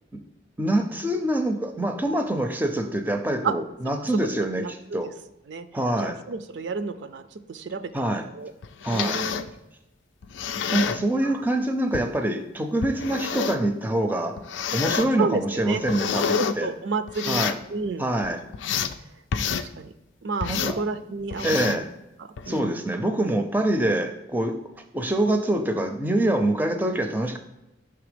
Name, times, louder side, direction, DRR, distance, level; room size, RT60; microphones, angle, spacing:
voice 1, 0.6-5.1 5.7-6.2 7.9-8.3 8.8-9.3 10.7-14.4 14.7-16.7 17.3-17.5 18.0-18.4 20.5-20.8 21.4-21.9 22.5-24.6 24.9-27.4, right 1 dB, 10° right, 6 dB, 0.4 m, -25 dB
voice 2, 4.4-5.0 5.5-5.7 6.0-7.2 7.5-8.5 8.9-9.5 11.2-11.3 15.2-15.8 16.4-18.0 19.4-19.9 20.2-21.5 22.2-22.9, right 4 dB, 70° right, 11 dB, 0.4 m, -31 dB
sound 1, 8.6-9.5 10.2-11.0 11.9-12.1 12.8-13.7 14.4-15.1 15.6-16.5 17.1-17.6 18.1-18.9 19.3-19.7 20.4-20.8 21.3-21.8 22.4-22.6, left 7 dB, 85° left, 0.4 m, -28 dB
5.9 x 3.4 x 5.0 m, 0.92 s
head